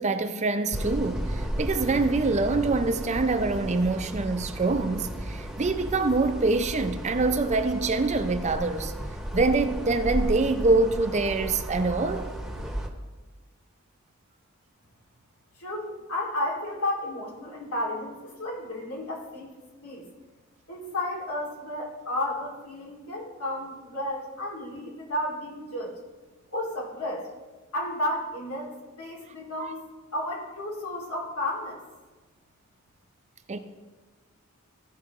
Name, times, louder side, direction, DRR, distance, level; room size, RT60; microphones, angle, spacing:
voice 1, 0.0-8.9 9.3-12.3 29.6-29.7 33.5-33.6, right 3 dB, 35° right, 0.5 m, -25 dB
sound 1, 0.7-12.9, equal, ahead, 0.9 m, -34 dB
voice 2, 15.6-19.5 19.8-20.1 20.7-25.9 26.5-27.3 27.7-29.8 30.1-31.8, left 1 dB, 85° left, 2.6 m, -32 dB
15.0 x 5.6 x 3.6 m
head